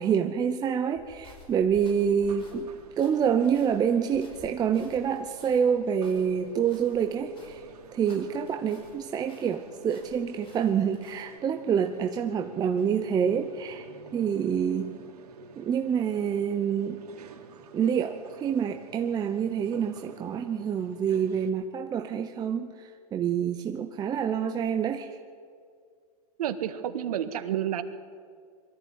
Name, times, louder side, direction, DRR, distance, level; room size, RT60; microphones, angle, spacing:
voice 1, 0.0-2.7 3.0-13.9 14.1-15.0 15.6-17.0 17.7-25.2, right 7 dB, 20° right, 6 dB, 0.8 m, -27 dB
sound 1, 0.9-9.0 9.3-11.2, left 4 dB, 25° left, 5.6 m, -54 dB
sound 2, 2.2-21.5, right 6 dB, 90° right, 3.4 m, -50 dB
voice 2, 26.4-27.8, right 10 dB, 70° right, 9 dB, 1.7 m, -30 dB
22.5 x 14.0 x 9.5 m, 2.1 s
hypercardioid pair, 130°, 20 cm